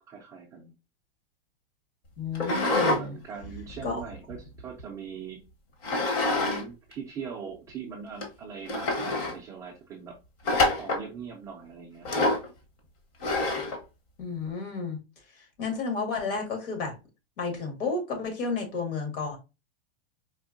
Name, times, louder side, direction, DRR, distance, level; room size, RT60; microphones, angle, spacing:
voice 1, 0.1-0.7 2.9-5.5 6.3-10.2 10.8-12.1, right 6 dB, 10° right, 0.3 m, -41 dB
voice 2, 2.2-3.2 3.8-4.0 14.2-15.0 15.4-16.9 17.4-19.4, left 4 dB, 60° left, 1.8 m, -32 dB
sound 1, 2.3-3.0 3.4-4.8 5.8-6.6 6.9-7.0 7.7-7.8 8.2-8.3 8.7-9.4 10.4-11.1 12.0-12.5 13.2-13.8, left 2 dB, 40° left, 1.1 m, -26 dB
4.3 x 2.7 x 2.6 m
supercardioid pair, 155°, 30 cm